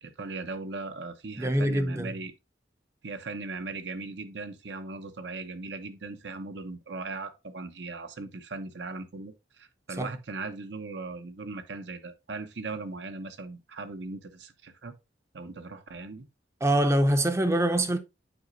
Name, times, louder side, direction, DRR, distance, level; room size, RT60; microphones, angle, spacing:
voice 1, 0.0-2.3 3.0-14.9 15.3-16.3, right 3 dB, 70° right, 0.8 m, -38 dB
voice 2, 1.4-2.1 10.0-10.1 16.6-18.0, right 1 dB, 15° right, 0.6 m, -24 dB
7.7 x 5.0 x 2.6 m
head